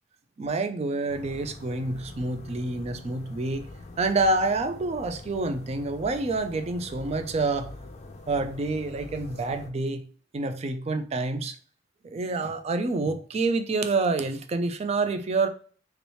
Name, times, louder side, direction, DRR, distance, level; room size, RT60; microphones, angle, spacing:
voice 1, 0.4-3.7 4.0-7.7 8.3-10.0 10.3-11.6 12.0-15.5, right 3 dB, 35° right, 8 dB, 0.4 m, -27 dB
sound 1, 1.1-9.7, left 2 dB, 35° left, 0.4 m, -44 dB
3.0 x 2.9 x 3.0 m, 0.44 s
head